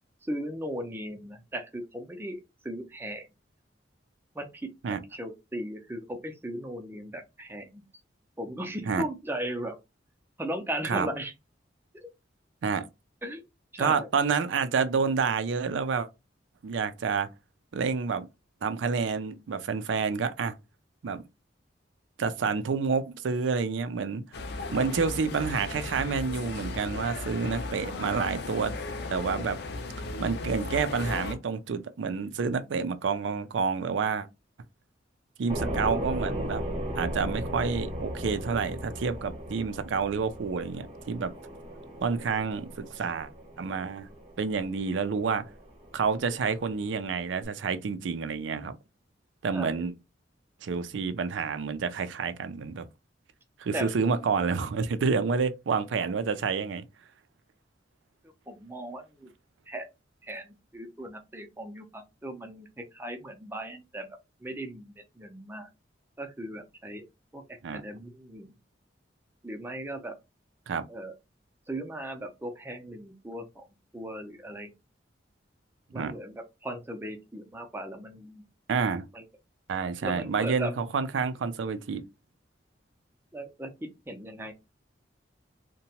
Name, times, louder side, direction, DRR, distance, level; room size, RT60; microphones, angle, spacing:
voice 1, 0.2-3.3 4.3-7.8 8.4-9.7 10.4-11.3 11.9-12.1 13.2-13.4 13.7-14.1 49.5-49.8 53.7-53.9 58.5-59.3 59.7-59.9 60.2-64.1 64.4-65.7 66.2-67.0 67.3-67.4 67.7-68.5 69.4-70.1 70.9-71.1 71.7-73.6 73.9-74.7 75.9-78.4 79.1-79.2 80.0-80.7 83.3-84.5, right 1 dB, 15° right, 0.5 m, -37 dB
voice 2, 13.8-16.1 16.6-17.3 17.7-18.3 18.6-20.5 21.0-21.3 22.2-24.2 24.7-28.7 29.1-29.6 30.2-34.3 35.4-36.6 37.0-41.3 42.0-43.3 43.6-44.1 44.4-45.4 45.9-48.8 49.4-49.9 50.6-52.8 53.6-56.8 67.6-67.8 70.7-70.8 75.9-76.1 78.7-79.1 79.7-82.0, right 5 dB, 80° right, 0.4 m, -29 dB
sound 1, 24.3-31.4, left 3 dB, 60° left, 0.5 m, -36 dB
sound 2, 35.5-47.5, right 1 dB, 30° right, 0.9 m, -37 dB
2.8 x 2.2 x 2.8 m
head